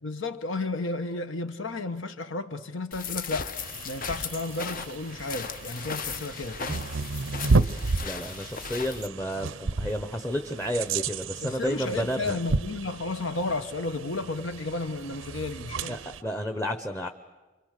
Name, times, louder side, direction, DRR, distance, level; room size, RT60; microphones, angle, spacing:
voice 1, 0.0-3.6 3.8-6.9 11.4-16.0, left 2 dB, 70° left, 1.3 m, -33 dB
sound 1, 2.9-9.1, left 6 dB, 45° left, 0.9 m, -37 dB
sound 2, 3.6-16.2, right 3 dB, 80° right, 0.7 m, -32 dB
voice 2, 8.0-12.4 15.9-17.1, equal, 10° left, 0.9 m, -31 dB
29.5 x 24.0 x 6.7 m
head